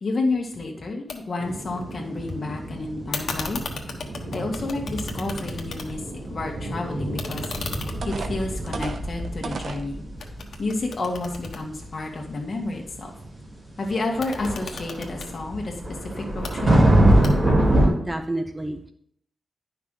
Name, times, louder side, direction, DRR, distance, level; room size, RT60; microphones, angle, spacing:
voice 1, 0.0-3.6 4.3-6.0 6.3-7.5 8.0-10.0 10.6-13.1 13.8-15.7 16.0-16.7, left 2 dB, 45° left, 1 dB, 1.7 m, -30 dB
sound 1, 1.1-1.2 1.5-2.3 3.1-6.2 6.5-9.8 10.2-12.4 14.0-15.3 16.2-16.5 17.2-17.7, left 4 dB, 75° left, 1.1 m, -37 dB
sound 2, 1.4-17.9, right 1 dB, 40° right, 3.0 m, -25 dB
sound 3, 7.5-7.6 8.0-9.9 10.5-10.6 11.1-11.4, right 4 dB, 60° right, 0.7 m, -34 dB
voice 2, 17.8-18.9, right 1 dB, 15° right, 6 dB, 0.6 m, -30 dB
10.5 x 5.8 x 3.8 m, 0.67 s
wide cardioid pair, 145°, 0 cm